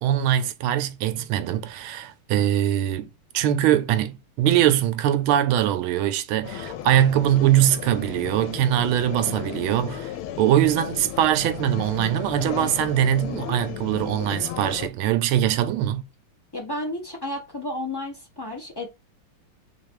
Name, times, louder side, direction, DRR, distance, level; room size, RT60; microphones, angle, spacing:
voice 1, 0.0-10.1 10.4-16.0, right 11 dB, 80° right, 1.4 m, -22 dB
sound 1, 6.4-14.9, left 11 dB, 85° left, 1.5 m, -35 dB
voice 2, 16.5-18.9, left 1 dB, 30° left, 0.4 m, -32 dB
3.6 x 3.2 x 4.5 m
omnidirectional pair, 2.4 m